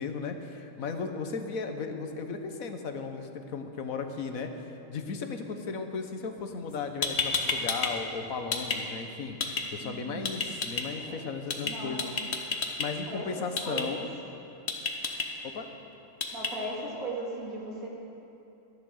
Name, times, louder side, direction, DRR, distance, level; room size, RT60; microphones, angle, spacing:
voice 1, 0.0-4.5 4.9-9.4 9.7-12.0 12.8-14.1 15.4-15.7, left 5 dB, 70° left, 6 dB, 1.4 m, -35 dB
sound 1, 6.7-6.8 7.0-7.9 8.2-8.8 9.4-9.6 10.2-10.8 11.5-11.7 12.0-12.9 13.6-13.8 14.7-15.2 16.2-16.5, left 5 dB, 50° left, 1.3 m, -29 dB
voice 2, 9.8-10.3 11.0-11.3 11.6-12.1 13.1-14.0 16.3-17.9, right 1 dB, 70° right, -4 dB, 3.0 m, -38 dB
14.0 x 10.5 x 6.4 m, 2.9 s
omnidirectional pair, 1.5 m